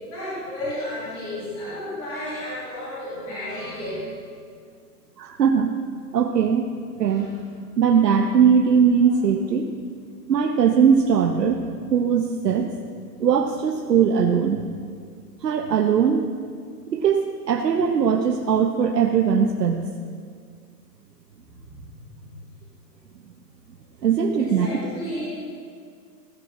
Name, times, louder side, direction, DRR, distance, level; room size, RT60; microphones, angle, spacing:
voice 1, 0.1-4.0 7.0-7.4 9.0-9.1 21.5-22.3 24.4-25.4, left 1 dB, 10° left, -11 dB, 2.7 m, -33 dB
voice 2, 5.2-5.7 6.1-6.7 7.0-7.3 7.8-9.7 10.3-11.6 11.9-12.8 13.2-14.6 15.4-16.3 16.9-19.9 24.0-24.7, right 7 dB, 75° right, 4 dB, 1.0 m, -20 dB
16.0 x 10.5 x 4.2 m, 2.1 s
hypercardioid pair, 180°, 49 cm